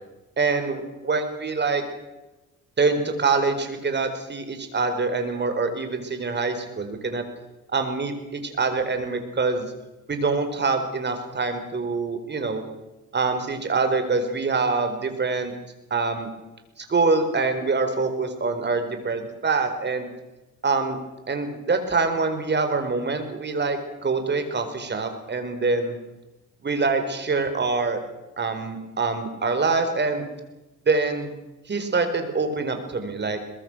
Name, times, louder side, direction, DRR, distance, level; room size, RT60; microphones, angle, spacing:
voice 1, 0.4-1.8 2.8-7.2 7.7-9.7 10.1-12.6 13.1-15.5 15.9-16.3 16.8-20.1 20.6-21.0 21.3-26.0 26.6-28.0 28.4-30.3 30.9-31.3 31.7-33.4, right 4 dB, 35° right, 7 dB, 4.4 m, -25 dB
22.0 x 22.0 x 6.3 m, 1.0 s
cardioid pair, 90°, 30 cm